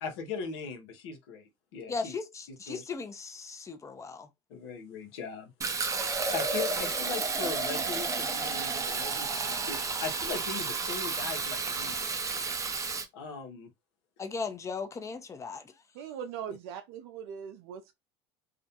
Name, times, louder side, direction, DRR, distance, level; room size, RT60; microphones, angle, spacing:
voice 1, 0.0-2.1 2.5-2.8 4.5-5.5 6.3-12.1 13.1-13.7, left 5 dB, 80° left, 0.7 m, -39 dB
voice 2, 1.9-4.3 14.2-15.7, left 4 dB, 20° left, 0.6 m, -37 dB
Fill (with liquid), 5.6-13.0, right 4 dB, 25° right, 0.5 m, -31 dB
voice 3, 16.0-17.9, right 8 dB, 75° right, 0.4 m, -40 dB
2.4 x 2.1 x 2.7 m
supercardioid pair, 95°, 14 cm